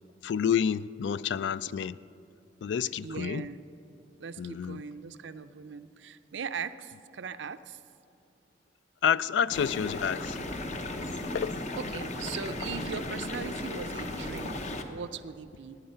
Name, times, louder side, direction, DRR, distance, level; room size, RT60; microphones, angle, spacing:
voice 1, 0.2-2.0 2.6-3.5 4.4-4.8 9.0-10.4 11.3-11.6, left 8 dB, 70° left, 0.3 m, -29 dB
voice 2, 3.0-3.6 4.2-7.8 11.8-15.8, right 6 dB, 75° right, 0.5 m, -39 dB
sound 1, 9.5-14.8, left 1 dB, 40° left, 0.9 m, -35 dB
15.5 x 9.7 x 5.6 m
head